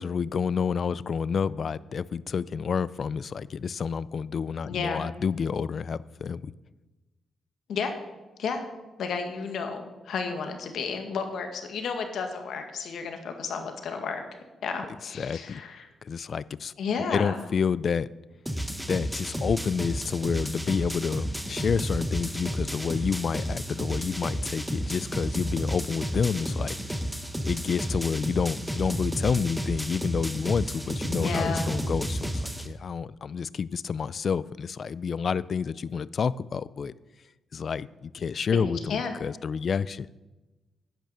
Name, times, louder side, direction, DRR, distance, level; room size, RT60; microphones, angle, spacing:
voice 1, 0.0-6.5 15.1-15.6 16.0-16.7 17.1-18.1 18.9-26.9 27.4-36.9 37.5-40.1, left 6 dB, 50° left, 19 dB, 0.3 m, -29 dB
voice 2, 4.6-5.0 7.7-7.9 8.4-8.6 9.0-14.2 14.6-15.9 16.8-17.4 31.1-31.7 38.5-39.1, left 5 dB, 70° left, 6 dB, 1.7 m, -32 dB
sound 1, 18.5-32.7, equal, ahead, 1.0 m, -32 dB
10.5 x 9.1 x 6.6 m, 1.1 s
cardioid pair, 110°, 0 cm